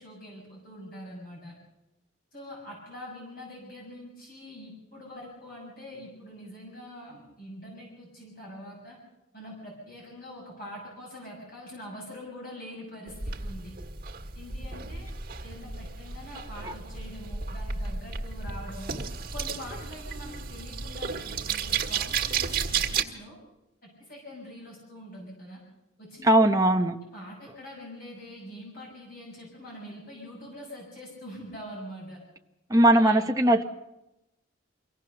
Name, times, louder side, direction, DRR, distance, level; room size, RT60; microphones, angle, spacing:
voice 1, 0.0-1.5 2.3-9.0 9.3-13.7 14.3-15.1 15.4-19.0 19.3-23.4 23.8-25.6 26.0-26.3 27.0-32.2 32.7-33.5, equal, 45° left, -3 dB, 6.8 m, -44 dB
sound 1, 13.1-23.0, right 6 dB, 45° right, 1.6 m, -33 dB
voice 2, 26.2-27.0 32.7-33.6, right 1 dB, 15° right, 3 dB, 0.8 m, -20 dB
24.5 x 17.0 x 6.7 m, 0.94 s
head